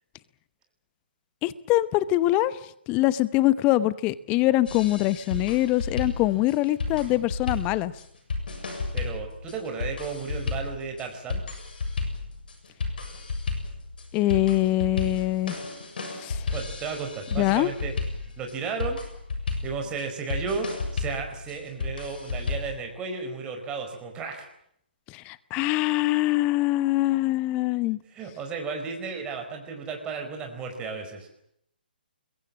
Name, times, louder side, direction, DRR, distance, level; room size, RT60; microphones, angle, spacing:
voice 1, 1.4-2.6 2.9-7.9 14.1-15.5 16.1-16.5 17.3-17.7 25.1-28.0, left 16 dB, 20° left, 17 dB, 0.9 m, -23 dB
sound 1, 4.7-22.8, left 4 dB, 60° left, 7.4 m, -33 dB
voice 2, 8.7-11.4 16.5-17.9 18.4-19.0 19.6-24.5 28.1-31.3, right 5 dB, 15° right, 3 dB, 4.7 m, -34 dB
25.5 x 22.5 x 7.5 m, 0.71 s
figure-of-eight pair, 135°, 6 cm